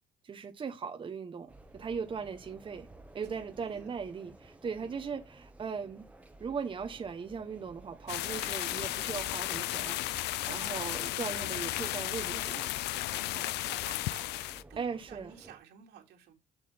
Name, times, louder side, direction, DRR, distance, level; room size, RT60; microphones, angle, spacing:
voice 1, 0.2-2.9 3.1-6.0 6.4-12.7 13.3-13.4 14.8-15.3, right 6 dB, 30° right, 1.0 m, -39 dB
sound 1, 1.5-15.6, right 2 dB, 10° right, 1.3 m, -55 dB
voice 2, 3.2-3.9 4.7-5.0 13.1-14.3 14.7-16.3, right 9 dB, 80° right, 2.6 m, -53 dB
sound 2, 8.1-14.6, left 16 dB, 80° left, 0.5 m, -34 dB
7.7 x 6.2 x 3.4 m
cardioid pair, 110°, 17 cm